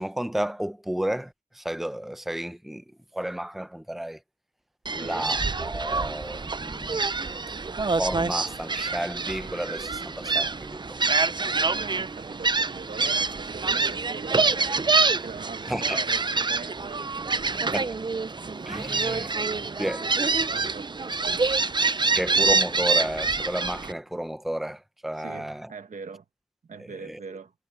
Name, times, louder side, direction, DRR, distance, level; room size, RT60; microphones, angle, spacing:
voice 1, 0.0-2.8 3.1-4.2 4.9-7.1 8.0-11.0 15.6-16.0 17.7-17.9 18.7-19.3 19.8-20.1 22.1-25.7 26.8-27.2, right 1 dB, ahead, 0.7 m, -32 dB
Gull seagull, 4.9-23.9, right 4 dB, 35° right, 0.5 m, -26 dB
voice 2, 5.0-5.4 11.7-18.1 20.3-22.2 25.2-26.2 26.6-27.5, right 5 dB, 90° right, 1.6 m, -42 dB
wide cardioid pair, 75°, 13 cm